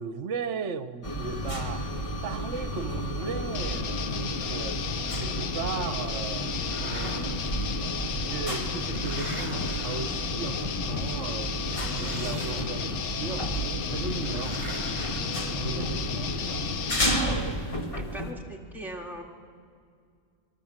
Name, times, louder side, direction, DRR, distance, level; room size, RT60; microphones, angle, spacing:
voice 1, 0.0-1.9 2.2-4.8 5.2-7.4 7.8-13.5 13.9-16.6, right 6 dB, 65° right, 11 dB, 1.3 m, -37 dB
sound 1, 1.0-18.3, right 1 dB, 25° left, 1.9 m, -32 dB
sound 2, 3.5-17.3, left 8 dB, 80° left, 1.2 m, -34 dB
sound 3, 6.4-7.6 8.4-10.6 11.7-13.1 14.1-16.0, right 2 dB, 30° right, 2.0 m, -44 dB
voice 2, 17.9-19.2, right 1 dB, ahead, -1 dB, 2.6 m, -40 dB
28.5 x 22.5 x 7.4 m, 2.3 s
omnidirectional pair, 1.4 m